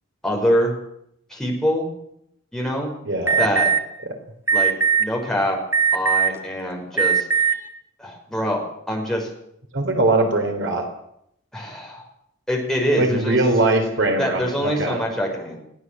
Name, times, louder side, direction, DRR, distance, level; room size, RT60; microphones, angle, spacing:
voice 1, 0.2-0.7 1.3-1.9 2.5-2.9 3.4-3.7 4.5-4.7 5.0-5.6 5.9-7.3 8.0-8.6 8.9-9.3 11.5-12.0 12.5-13.4 14.2-15.6, equal, 5° left, -1 dB, 5.6 m, -24 dB
voice 2, 3.0-3.5 9.7-10.9 13.0-15.0, right 2 dB, 60° right, 4 dB, 3.7 m, -21 dB
Alarm, 3.3-3.8 4.5-5.0 5.7-6.4 6.9-7.5, right 7 dB, 15° right, 1.6 m, -18 dB
20.5 x 16.5 x 7.7 m, 0.76 s
head